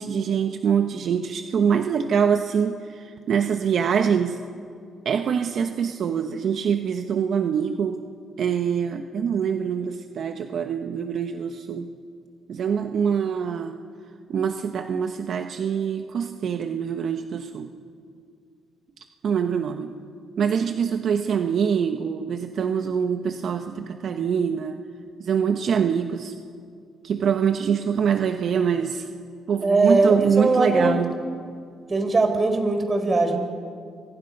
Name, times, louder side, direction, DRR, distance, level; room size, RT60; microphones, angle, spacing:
voice 1, 0.0-4.4 5.0-8.0 8.4-11.9 12.5-13.8 14.3-17.7 19.2-19.9 20.4-24.8 25.2-26.3 27.0-29.1 29.5-31.1, right 7 dB, 60° right, 6 dB, 1.1 m, -24 dB
voice 2, 29.6-31.0 31.9-33.4, right 3 dB, 30° right, 5 dB, 4.6 m, -20 dB
28.5 x 24.0 x 5.5 m, 2.2 s
cardioid pair, 90°, 0 cm